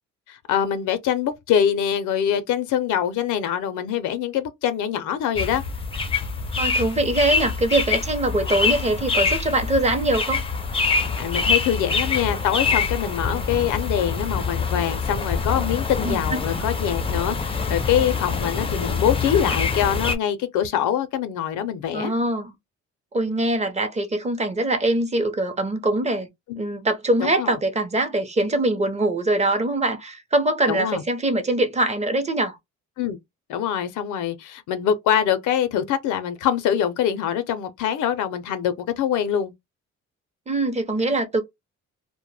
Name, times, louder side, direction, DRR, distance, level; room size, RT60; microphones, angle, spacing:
voice 1, 0.3-5.6 11.2-22.1 26.5-26.6 27.2-27.6 30.7-31.0 33.0-33.2 33.5-39.5, left 9 dB, 80° left, 0.5 m, -24 dB
sound 1, 5.4-20.2, left 5 dB, 20° left, 0.4 m, -25 dB
voice 2, 6.6-10.4 16.0-16.4 21.9-22.5 23.1-26.3 26.6-32.6 40.5-41.4, right 2 dB, 20° right, 0.6 m, -23 dB
2.1 x 2.1 x 3.1 m
cardioid pair, 90°, 30 cm